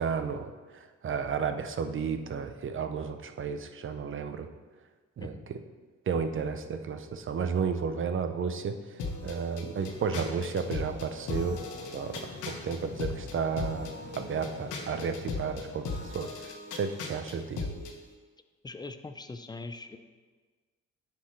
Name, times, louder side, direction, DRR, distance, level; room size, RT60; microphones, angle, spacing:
voice 1, 0.0-4.5 5.2-5.6 6.1-11.6 11.9-12.2 12.5-17.7, right 6 dB, 45° right, 8 dB, 0.6 m, -33 dB
sound 1, 9.0-18.0, left 3 dB, 80° left, 1.2 m, -38 dB
sound 2, 9.8-15.8, left 4 dB, 35° left, 0.9 m, -48 dB
voice 2, 18.6-20.0, left 3 dB, 15° left, 8 dB, 0.5 m, -41 dB
9.8 x 6.0 x 3.2 m, 1.4 s
cardioid pair, 90°, 30 cm